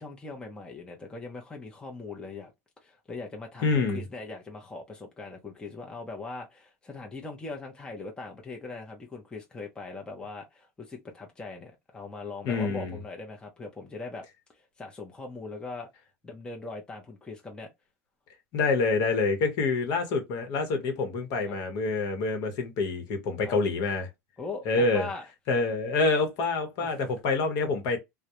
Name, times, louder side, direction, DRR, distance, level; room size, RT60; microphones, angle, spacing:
voice 1, 0.0-2.5 2.8-14.2 14.5-15.9 16.2-17.7 21.4-21.6 23.4-23.6 24.4-25.2 26.8-27.1, left 3 dB, 10° left, 0.6 m, -40 dB
voice 2, 3.6-4.0 12.4-13.0 18.5-24.1 24.7-25.1 25.5-28.0, left 3 dB, 55° left, 1.0 m, -27 dB
2.2 x 2.1 x 2.8 m
supercardioid pair, 115°, 8 cm